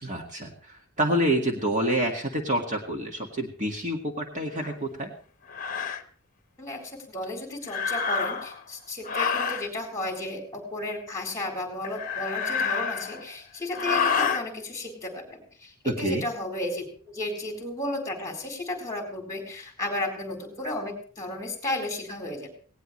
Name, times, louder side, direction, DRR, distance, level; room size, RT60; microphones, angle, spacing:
voice 1, 0.0-5.1 15.9-16.2, right 1 dB, 35° right, 1 dB, 1.9 m, -27 dB
sound 1, 4.6-4.7 5.5-6.0 7.6-8.6 9.0-9.7 11.8-13.3 13.7-14.4, left 6 dB, 40° left, 1.1 m, -28 dB
voice 2, 7.1-22.5, left 1 dB, 15° left, 2 dB, 4.0 m, -33 dB
18.5 x 18.0 x 3.2 m, 0.42 s
head